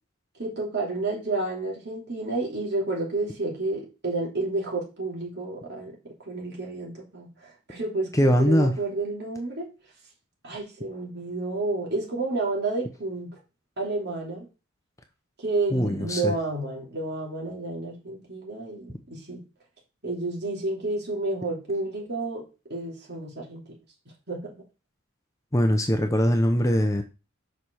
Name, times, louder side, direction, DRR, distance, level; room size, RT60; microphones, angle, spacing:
voice 1, 0.4-5.9 6.3-9.7 10.4-13.4 13.8-14.5 15.4-19.4 20.0-22.4 22.7-23.6 24.3-24.5, right 2 dB, 50° right, -2 dB, 3.1 m, -30 dB
voice 2, 8.2-8.7 15.7-16.3 25.5-27.0, equal, 15° left, 5 dB, 0.8 m, -21 dB
5.7 x 5.1 x 6.3 m, 0.31 s
head